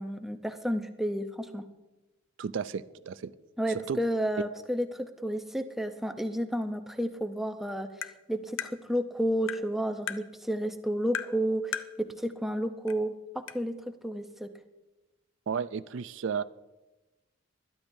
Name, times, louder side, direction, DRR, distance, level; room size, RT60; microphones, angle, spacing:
voice 1, 0.0-1.6 3.6-14.5, equal, ahead, 7 dB, 0.6 m, -31 dB
voice 2, 2.4-3.3 3.9-4.0 15.5-16.4, right 6 dB, 65° right, 15 dB, 0.4 m, -33 dB
Tap, 8.0-8.1 8.6-8.7 9.5-9.6 10.1-10.2 11.1-11.3 11.7-11.9 12.9-13.0 13.5-13.6, left 8 dB, 70° left, 0.6 m, -34 dB
20.5 x 12.0 x 2.7 m, 1.1 s
head